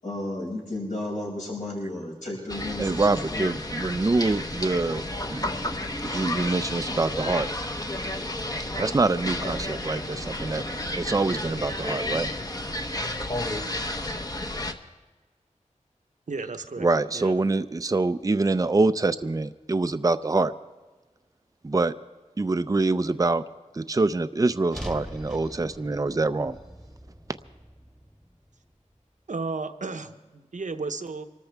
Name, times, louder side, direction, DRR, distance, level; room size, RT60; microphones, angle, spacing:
voice 1, 0.0-3.5, left 1 dB, 70° left, -4 dB, 6.1 m, -33 dB
sound 1, 2.5-14.7, left 1 dB, 30° left, 1.1 m, -31 dB
voice 2, 2.8-5.0 5.3-5.5 6.0-7.5 8.8-10.6 10.9-12.3 16.8-20.5 21.6-21.9 22.4-23.4 23.7-26.6, right 3 dB, 25° right, 11 dB, 0.5 m, -25 dB
voice 3, 16.3-16.9 17.1-17.4 29.3-31.3, right 3 dB, 75° right, 8 dB, 1.0 m, -33 dB
sound 2, 24.7-29.0, equal, 5° left, 1.4 m, -42 dB
25.0 x 13.5 x 3.5 m, 1.3 s
wide cardioid pair, 70°, 13 cm